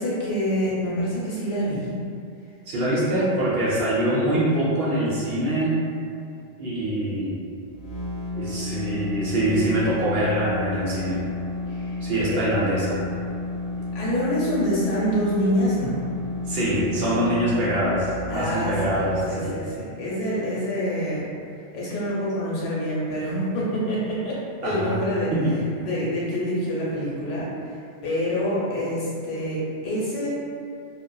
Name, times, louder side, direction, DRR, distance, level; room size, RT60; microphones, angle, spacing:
voice 1, 0.0-2.0 11.7-12.0 12.3-12.4 13.9-16.0 18.3-21.3 21.7-25.3 25.8-30.3, equal, 80° left, -7 dB, 1.1 m, -26 dB
voice 2, 2.7-5.8 6.6-7.4 8.4-11.2 12.0-13.1 16.5-19.6 24.6-25.0 25.3-25.6, right 1 dB, 65° right, -7 dB, 0.7 m, -24 dB
sound 1, 7.6-19.3, left 2 dB, 30° left, 1.0 m, -32 dB
2.7 x 2.0 x 2.2 m, 2.4 s
omnidirectional pair, 1.2 m